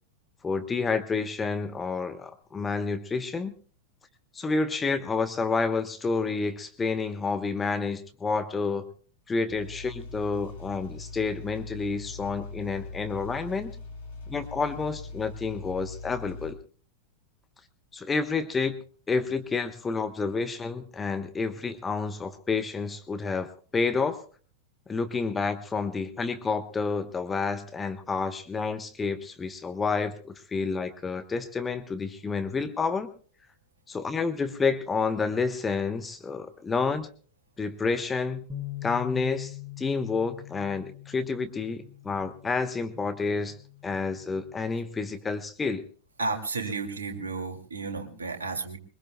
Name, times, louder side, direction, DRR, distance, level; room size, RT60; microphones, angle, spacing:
voice 1, 0.4-3.5 4.3-8.9 9.3-13.7 14.3-16.6 17.9-24.2 24.9-33.1 33.9-37.1 37.6-38.5 38.8-43.6 43.8-45.8, left 4 dB, 15° left, 9 dB, 1.1 m, -29 dB
sound 1, 9.5-16.5, left 3 dB, 60° left, 3.5 m, -41 dB
Bass guitar, 38.5-44.7, left 14 dB, ahead, 5.6 m, -43 dB
voice 2, 46.2-48.8, right 3 dB, 70° right, 5 dB, 2.5 m, -32 dB
23.0 x 21.5 x 2.3 m, 0.42 s
figure-of-eight pair, 90°, 0 cm